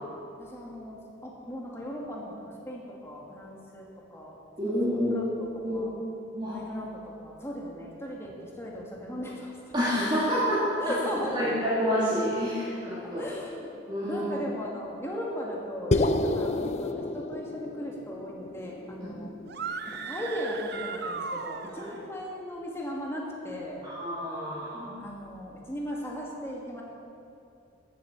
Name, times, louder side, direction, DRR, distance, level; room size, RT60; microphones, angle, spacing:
voice 1, 0.4-4.4 5.1-5.5 5.7-5.9 6.5-9.7 10.8-11.6 13.0-19.3 19.9-23.9 25.0-26.8, equal, 15° left, -2 dB, 2.1 m, -37 dB
voice 2, 4.6-5.3 5.6-5.9 6.3-6.6 9.7-10.9 11.3-13.2 13.9-14.5 19.1-19.2 21.8-21.9 23.8-25.0, equal, 25° right, -10 dB, 2.8 m, -28 dB
sound 1, 15.9-20.3, left 2 dB, 35° left, 0.6 m, -30 dB
sound 2, 19.5-22.1, right 5 dB, 55° right, 0.7 m, -36 dB
14.0 x 8.7 x 7.1 m, 2.6 s
head